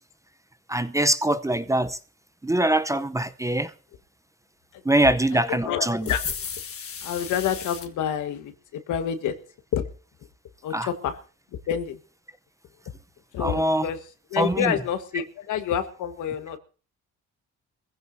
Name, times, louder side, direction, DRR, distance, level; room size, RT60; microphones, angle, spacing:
voice 1, 0.7-2.0 2.4-3.7 4.8-6.1 10.7-10.9 13.4-13.9 14.4-14.7, right 1 dB, 10° right, 0.7 m, -23 dB
voice 2, 5.5-6.2 7.0-9.3 9.7-9.8 10.6-11.2 11.7-12.0 13.3-14.0 14.3-16.6, left 9 dB, 80° left, 1.6 m, -28 dB
sound 1, 6.0-7.9, left 7 dB, 50° left, 1.4 m, -35 dB
22.0 x 15.5 x 2.7 m
cardioid pair, 90°, 30 cm